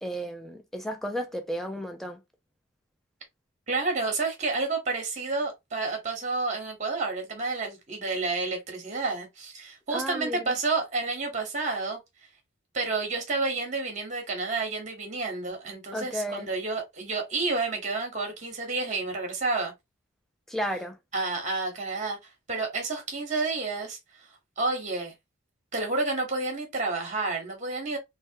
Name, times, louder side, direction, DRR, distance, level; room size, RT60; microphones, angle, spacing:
voice 1, 0.0-2.2 9.9-10.5 15.9-16.5 20.5-21.0, equal, ahead, 0.4 m, -33 dB
voice 2, 3.7-12.0 12.7-19.7 21.1-24.3 24.6-25.1 25.7-28.0, right 3 dB, 35° right, 1.1 m, -30 dB
3.4 x 2.2 x 2.6 m
head